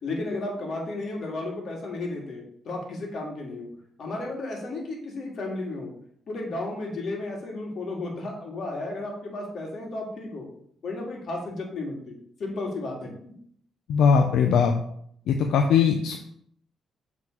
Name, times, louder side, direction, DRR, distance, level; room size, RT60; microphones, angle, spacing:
voice 1, 0.0-3.7 4.0-5.9 6.3-10.5 10.8-12.1 12.4-13.3, left 2 dB, 60° left, 0 dB, 2.3 m, -33 dB
voice 2, 13.9-14.7 15.3-16.2, left 6 dB, 80° left, 4 dB, 0.6 m, -20 dB
7.7 x 3.9 x 4.5 m, 0.66 s
cardioid pair, 90°, 0 cm